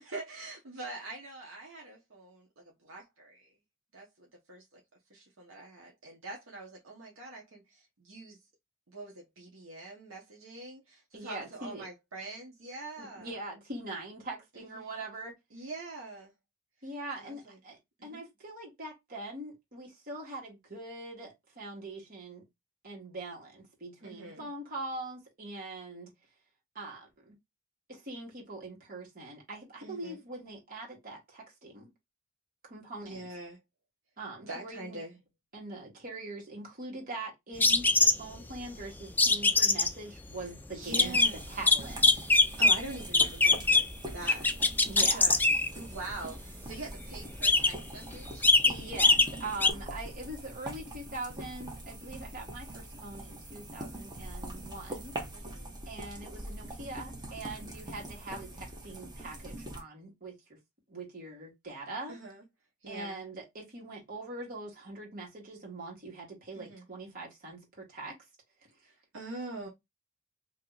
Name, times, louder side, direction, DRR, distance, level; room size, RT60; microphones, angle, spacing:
voice 1, 0.0-3.5 3.9-4.8 5.1-8.4 8.9-13.4 14.5-15.0 15.5-16.3 17.2-17.6 18.0-18.2 24.0-24.5 29.8-30.2 33.0-33.6 34.5-35.1 40.4-40.5 40.7-41.4 42.6-45.4 45.7-48.5 55.3-55.8 62.1-62.4 62.8-63.2 66.5-66.8 68.8-69.7, right 2 dB, 70° right, 1.0 m, -44 dB
voice 2, 11.1-11.8 13.0-15.3 16.8-22.4 22.8-26.1 26.7-27.3 27.9-31.9 32.6-33.3 34.2-35.0 35.5-41.2 41.5-42.2 44.8-45.2 48.6-55.1 55.9-60.6 60.9-62.1 62.9-68.1, right 2 dB, 45° right, 1.6 m, -42 dB
sound 1, 37.6-38.4 39.2-39.9 40.8-41.3 41.7-42.8 43.1-43.9 44.3-45.7 46.9-47.0 47.3-47.9 48.2-48.7 49.0-49.3 49.6-49.7, left 3 dB, 10° left, 0.3 m, -22 dB
sound 2, 40.8-59.8, right 1 dB, 20° right, 1.0 m, -43 dB
2.9 x 2.8 x 3.8 m
head